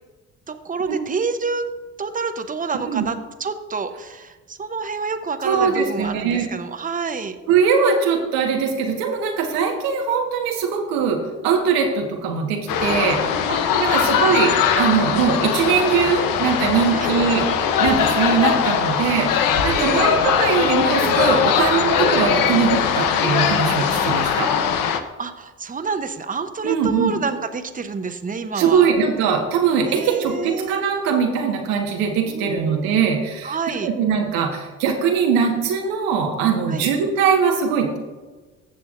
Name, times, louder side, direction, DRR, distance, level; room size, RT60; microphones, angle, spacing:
voice 1, 0.5-1.7 2.0-7.3 13.5-14.1 16.9-17.1 19.7-20.2 21.6-21.7 25.2-28.9 29.9-30.8 32.2-32.9 33.4-33.9 36.7-36.9, right 4 dB, 25° right, 8 dB, 0.9 m, -28 dB
voice 2, 5.4-6.5 7.5-13.3 13.7-24.5 26.6-27.1 28.5-33.6 33.8-38.0, right 6 dB, 80° right, 2 dB, 1.6 m, -21 dB
sound 1, 12.7-25.0, left 7 dB, 70° left, 0.9 m, -20 dB
15.0 x 6.9 x 2.6 m, 1.3 s
hypercardioid pair, 60°, 35 cm